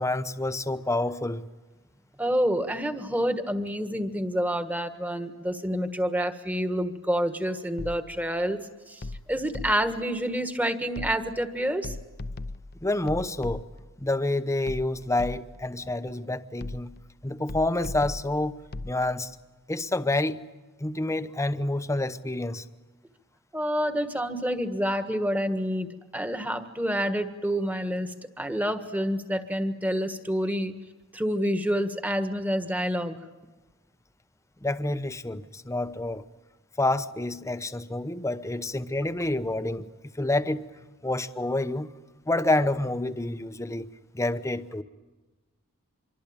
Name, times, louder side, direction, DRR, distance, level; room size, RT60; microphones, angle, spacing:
voice 1, 0.0-1.4 12.8-13.7 14.0-17.0 17.2-19.4 19.7-20.5 20.8-22.6 34.6-36.2 36.8-39.9 40.1-40.7 41.0-41.9 42.3-44.8, left 2 dB, 15° left, 0.8 m, -28 dB
voice 2, 2.2-8.6 8.9-9.0 9.3-12.0 23.5-30.7 31.1-33.2, equal, 10° right, 1.5 m, -28 dB
sound 1, 7.8-8.3 9.0-10.1 11.0-11.5 11.8-14.0 14.7-15.7 16.6-17.1 17.5-19.0, left 2 dB, 50° left, 0.8 m, -38 dB
25.5 x 24.0 x 8.8 m
head